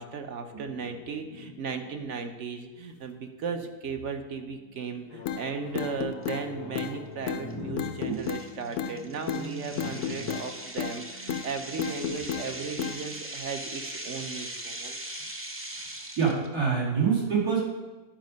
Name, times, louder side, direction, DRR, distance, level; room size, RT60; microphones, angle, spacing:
voice 1, 0.0-15.0, right 5 dB, 60° right, 6 dB, 0.9 m, -36 dB
sound 1, 0.8-2.6 3.1-3.6 4.4-10.2, left 3 dB, 85° left, 1.4 m, -43 dB
sound 2, 5.3-5.4 5.8-6.4 6.8-6.9 7.3-7.4 7.8-8.4 8.8-9.0 9.3-9.4 9.8-10.5 10.8-11.0 11.3-11.5 11.8-12.5 12.8-13.0, left 9 dB, 65° left, 0.8 m, -32 dB
sound 3, 6.2-6.3 6.9-7.1 7.5-7.6 8.1-16.5, right 1 dB, 20° right, 0.3 m, -40 dB
voice 2, 16.2-17.6, right 6 dB, 80° right, -6 dB, 3.1 m, -25 dB
10.5 x 5.2 x 5.2 m, 1.2 s
omnidirectional pair, 1.6 m